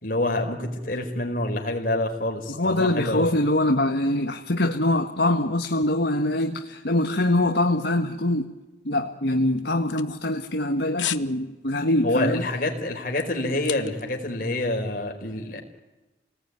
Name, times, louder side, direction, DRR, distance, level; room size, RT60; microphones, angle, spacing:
voice 1, 0.0-3.3 12.0-15.6, left 1 dB, 50° left, 2 dB, 4.7 m, -27 dB
voice 2, 2.5-8.5 8.8-12.5, left 1 dB, 65° left, 3 dB, 1.6 m, -23 dB
sound 1, 9.6-10.6 11.0-11.3 11.7-11.9 12.4-14.2 14.4-14.5, left 13 dB, 85° left, 1.0 m, -34 dB
29.5 x 19.5 x 9.8 m, 1.1 s
head